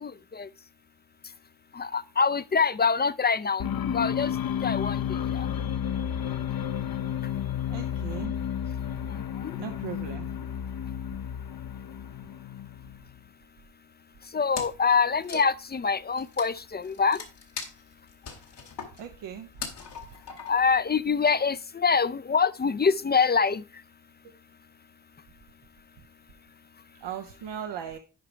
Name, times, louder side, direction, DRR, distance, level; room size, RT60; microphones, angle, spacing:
voice 1, 0.0-0.5 1.7-4.3 4.6-5.0 5.3-5.5 9.4-9.5 14.3-17.2 20.4-23.6, left 5 dB, 25° left, 0.4 m, -25 dB
sound 1, 3.6-13.2, left 9 dB, 55° left, 0.7 m, -32 dB
voice 2, 7.7-8.3 9.6-10.3 15.3-15.4 19.0-19.5 27.0-28.0, right 9 dB, 90° right, 0.8 m, -37 dB
Wood, 14.5-14.9 15.2-20.8, left 5 dB, 80° left, 1.9 m, -40 dB
10.5 x 4.9 x 4.4 m
supercardioid pair, 45°, 41 cm